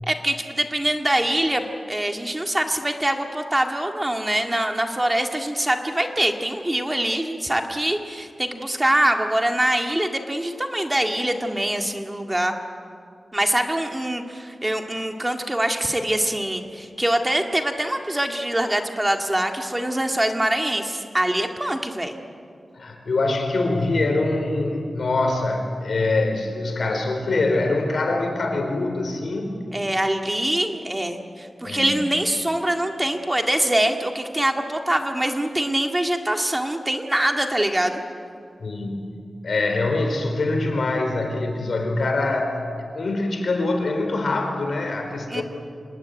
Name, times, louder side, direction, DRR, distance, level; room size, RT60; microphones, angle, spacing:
voice 1, 0.1-12.5 13.3-22.2 29.7-38.0 45.3-45.4, right 1 dB, 15° right, 4 dB, 2.0 m, -24 dB
voice 2, 22.8-29.5 31.6-32.0 38.6-39.1 39.4-42.6 42.9-45.4, left 2 dB, 65° left, 4 dB, 4.6 m, -24 dB
26.0 x 19.5 x 9.4 m, 2.3 s
wide cardioid pair, 115°, 0 cm